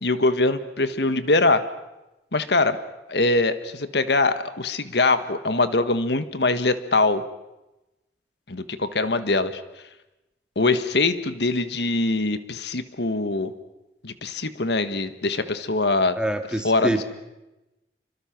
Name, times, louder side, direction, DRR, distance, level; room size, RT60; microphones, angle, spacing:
voice 1, 0.0-1.6 2.3-2.8 3.1-7.2 8.5-9.6 10.5-13.5 14.0-16.2 16.6-17.0, left 2 dB, 75° left, 11 dB, 1.5 m, -23 dB
voice 2, 16.2-17.0, right 1 dB, 5° right, 6 dB, 2.0 m, -25 dB
27.5 x 25.0 x 6.0 m, 0.98 s
head